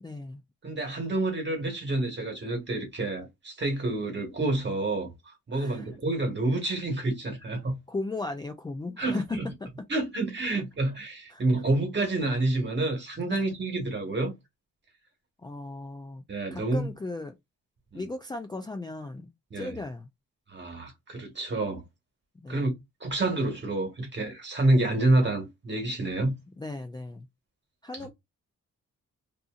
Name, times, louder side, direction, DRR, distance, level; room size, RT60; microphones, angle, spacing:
voice 1, 0.0-0.4 5.5-5.9 7.9-9.4 10.5-10.6 11.3-11.4 13.3-13.4 15.4-16.2 16.5-17.3 17.9-19.3 19.5-20.1 22.4-22.6 26.6-27.3 27.8-28.1, left 2 dB, 15° left, 0.3 m, -36 dB
voice 2, 0.6-7.8 9.0-9.5 9.9-14.3 16.3-16.9 17.9-18.0 19.5-19.7 20.5-21.8 22.5-22.7 23.0-26.3, right 2 dB, 35° right, 1.2 m, -28 dB
2.6 x 2.6 x 2.4 m
cardioid pair, 105°, 31 cm